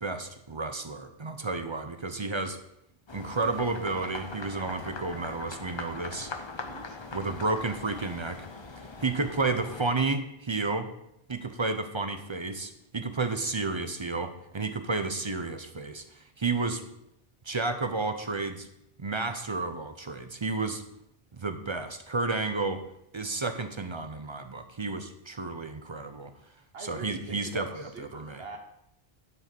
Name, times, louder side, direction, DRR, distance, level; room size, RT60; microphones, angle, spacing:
voice 1, 0.0-2.6 3.1-6.3 7.1-8.5 9.0-10.9 11.3-16.8 17.4-18.7 19.0-20.8 21.3-22.8 23.1-26.3 26.8-28.4, right 3 dB, 35° right, 8 dB, 0.6 m, -31 dB
sound 1, 3.1-9.9, left 3 dB, 30° left, 0.7 m, -41 dB
voice 2, 6.6-7.0 26.7-28.6, right 3 dB, 70° right, 4 dB, 1.4 m, -43 dB
11.5 x 5.3 x 5.2 m, 0.82 s
omnidirectional pair, 1.1 m